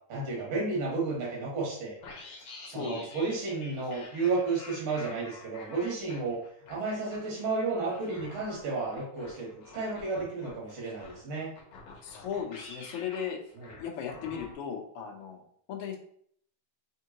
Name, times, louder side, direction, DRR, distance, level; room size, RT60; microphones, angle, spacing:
voice 1, 0.1-1.9 2.7-6.4 6.7-11.5 13.6-13.7, right 3 dB, 55° right, -4 dB, 2.6 m, -32 dB
sound 1, 2.0-14.5, left 3 dB, 60° left, 1.6 m, -48 dB
voice 2, 2.7-3.1 12.0-13.4 13.8-15.4 15.7-16.0, left 7 dB, 90° left, 0 dB, 1.2 m, -36 dB
4.9 x 3.7 x 2.9 m, 0.64 s
omnidirectional pair, 3.7 m